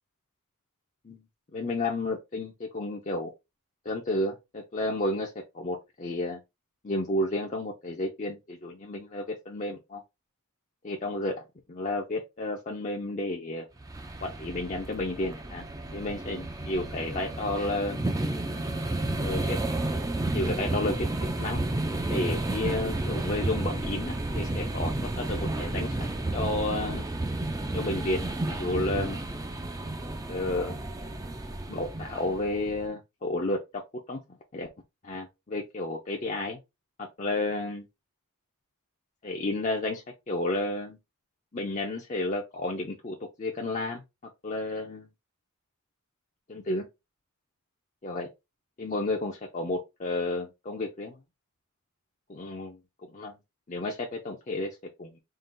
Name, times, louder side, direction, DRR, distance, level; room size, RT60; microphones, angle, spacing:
voice 1, 1.5-3.3 3.8-6.4 6.8-10.0 10.8-11.4 11.7-13.7 14.2-15.6 15.9-18.0 19.2-19.6 20.3-21.1 21.4-21.6 22.1-26.0 26.3-27.1 27.7-29.2 30.3-30.8 31.7-33.6 34.1-34.2 34.5-34.7 35.0-36.6 37.0-37.8 39.2-41.0 41.5-44.0 44.4-45.1 46.5-46.9 48.0-48.3 48.8-51.2 52.3-52.8 53.1-53.3 53.7-55.2, left 2 dB, 35° left, 0.6 m, -31 dB
sound 1, 13.8-32.9, right 2 dB, 15° right, 0.4 m, -32 dB
3.8 x 2.4 x 3.8 m
head